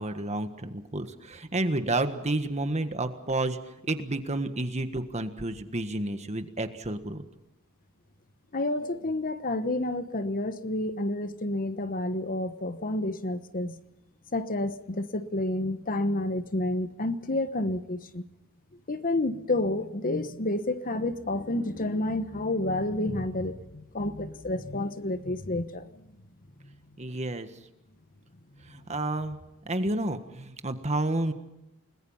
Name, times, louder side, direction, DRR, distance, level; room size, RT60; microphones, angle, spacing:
voice 1, 0.0-7.2 27.0-27.5 28.6-29.4 29.6-31.3, right 2 dB, 30° right, 8 dB, 1.6 m, -30 dB
voice 2, 8.5-13.8 14.3-18.2 18.9-25.9, left 2 dB, 40° left, 11 dB, 1.1 m, -30 dB
30.0 x 20.5 x 5.8 m, 0.91 s
head